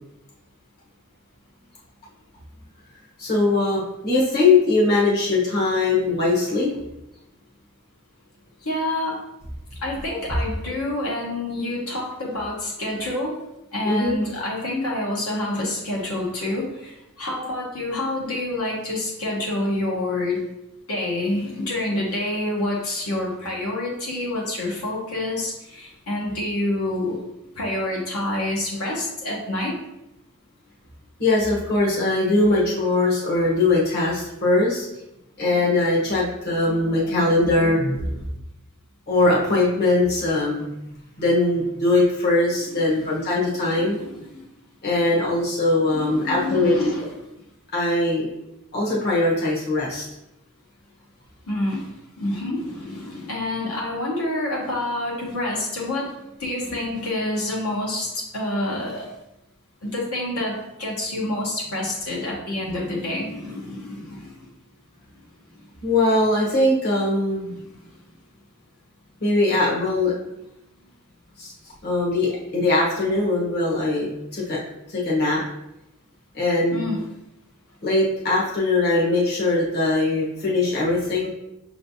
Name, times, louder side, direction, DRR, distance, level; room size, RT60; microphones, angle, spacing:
voice 1, 3.2-6.7 13.8-14.2 31.2-34.9 35.4-38.2 39.1-40.7 41.2-44.0 44.8-46.7 47.7-48.3 48.7-50.1 65.8-67.5 69.2-70.1 71.4-71.5 71.8-74.6 74.9-75.4 76.3-77.0 77.8-81.3, left 2 dB, 45° left, -5 dB, 1.1 m, -21 dB
voice 2, 8.6-9.2 9.8-13.4 13.7-20.4 20.9-27.2 27.5-29.8 42.6-43.1 43.6-44.4 45.8-47.1 51.5-59.1 59.8-64.5 67.5-67.6 76.7-77.0, left 1 dB, 75° left, -4 dB, 1.1 m, -27 dB
6.0 x 3.2 x 2.7 m, 0.89 s
head